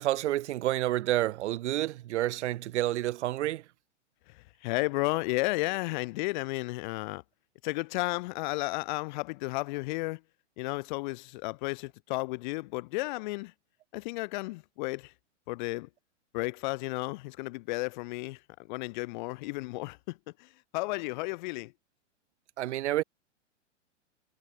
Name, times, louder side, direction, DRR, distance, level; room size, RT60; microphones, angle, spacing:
voice 1, 0.0-3.6 22.6-23.0, right 14 dB, 70° right, 0.5 m, -29 dB
voice 2, 4.3-7.2 7.6-10.2 10.6-13.5 13.9-15.1 15.5-15.9 16.3-21.7, left 23 dB, 40° left, 0.7 m, -33 dB
hypercardioid pair, 120°, 36 cm